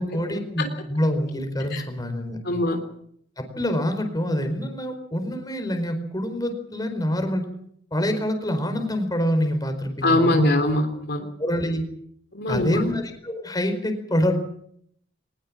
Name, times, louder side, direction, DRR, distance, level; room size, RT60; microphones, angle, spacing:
voice 1, 0.0-2.4 3.4-7.4 7.9-10.5 11.4-11.8 12.5-14.4, equal, 20° left, 6 dB, 4.7 m, -26 dB
voice 2, 2.4-2.8 10.0-11.3 12.4-12.8, left 1 dB, 60° left, 5 dB, 3.6 m, -22 dB
22.5 x 20.5 x 7.5 m, 0.68 s
head